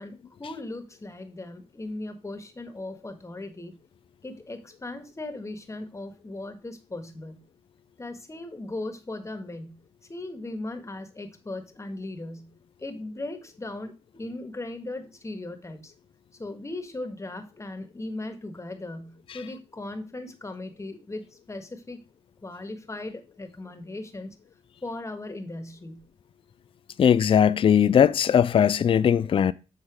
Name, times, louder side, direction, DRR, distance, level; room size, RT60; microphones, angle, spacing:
voice 1, 0.0-3.8 4.2-7.4 8.0-9.8 10.1-15.9 16.4-22.0 22.4-24.3 24.8-26.1, left 2 dB, 25° left, 1.5 m, -38 dB
voice 2, 27.0-29.5, left 8 dB, 50° left, 0.4 m, -19 dB
8.0 x 3.9 x 4.9 m
supercardioid pair, 55°, 12 cm